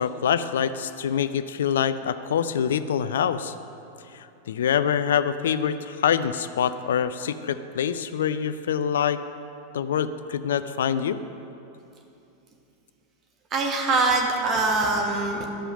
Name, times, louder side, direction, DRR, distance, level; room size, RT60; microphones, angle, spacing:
voice 1, 0.0-3.5 4.1-9.2 9.7-11.2, left 8 dB, 60° left, 13 dB, 0.4 m, -25 dB
voice 2, 13.5-15.5, right 3 dB, 30° right, 1 dB, 1.4 m, -23 dB
12.5 x 5.5 x 5.2 m, 2.8 s
figure-of-eight pair, 90°, 0 cm